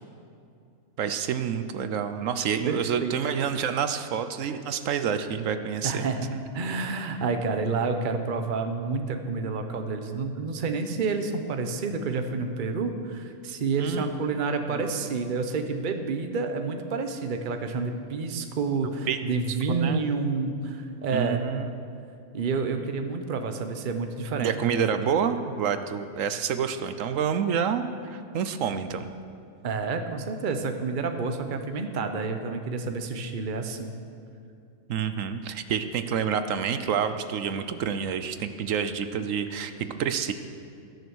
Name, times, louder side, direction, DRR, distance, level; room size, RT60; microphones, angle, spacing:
voice 1, 1.0-6.1 6.3-6.4 13.8-14.0 14.7-14.8 19.1-19.2 19.7-20.0 21.1-21.7 24.4-29.1 34.9-40.3, right 7 dB, 65° right, 10 dB, 1.0 m, -28 dB
voice 2, 2.6-3.2 5.8-6.3 6.5-21.4 22.3-24.5 25.3-25.4 29.6-33.9, right 4 dB, 40° right, 6 dB, 0.9 m, -29 dB
20.5 x 6.8 x 6.2 m, 2.5 s
omnidirectional pair, 1.5 m